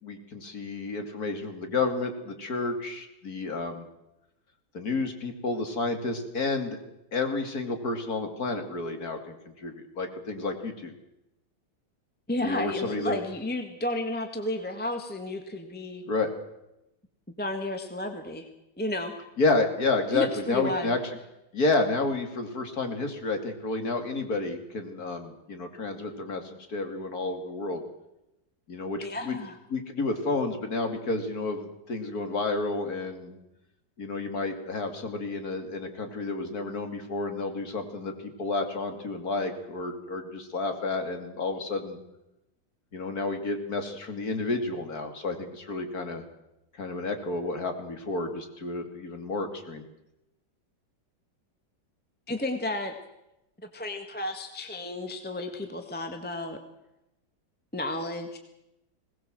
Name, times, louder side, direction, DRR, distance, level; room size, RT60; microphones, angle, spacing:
voice 1, 0.0-3.9 4.7-6.8 7.1-10.9 12.4-13.2 16.1-16.3 19.4-21.0 21.5-27.8 28.7-29.4 29.7-33.4 34.0-42.0 42.9-46.2 46.8-49.8, left 3 dB, 45° left, 6 dB, 3.1 m, -30 dB
voice 2, 12.3-16.0 17.4-18.5 18.8-19.1 20.1-21.0 29.0-29.6 52.3-52.9 53.6-56.6 57.7-58.4, left 1 dB, 5° left, 5 dB, 1.5 m, -32 dB
21.5 x 18.5 x 7.6 m, 0.89 s
omnidirectional pair, 2.2 m